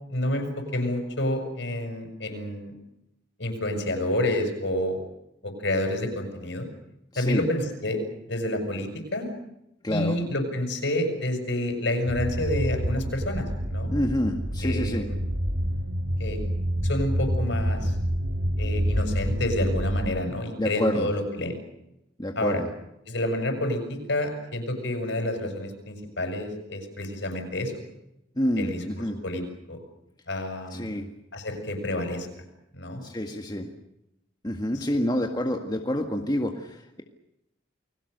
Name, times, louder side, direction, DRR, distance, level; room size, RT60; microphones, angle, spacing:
voice 1, 0.1-2.7 3.4-5.0 5.4-6.7 7.2-8.0 8.3-9.3 9.9-13.9 14.6-15.2 16.2-16.4 16.8-17.9 18.6-21.5 22.3-22.6 23.1-27.7 28.6-29.4 29.7-29.8 30.3-31.0 31.3-32.3 32.7-33.0, left 1 dB, 65° left, 6 dB, 6.6 m, -29 dB
voice 2, 7.1-7.4 9.8-10.2 13.9-15.1 20.6-21.1 22.2-22.7 28.4-29.2 30.7-31.1 33.0-33.7 34.4-37.0, left 1 dB, 20° left, 3 dB, 1.8 m, -28 dB
sound 1, 12.1-20.1, equal, 65° right, 5.3 m, -27 dB
29.5 x 21.5 x 6.7 m, 0.85 s
head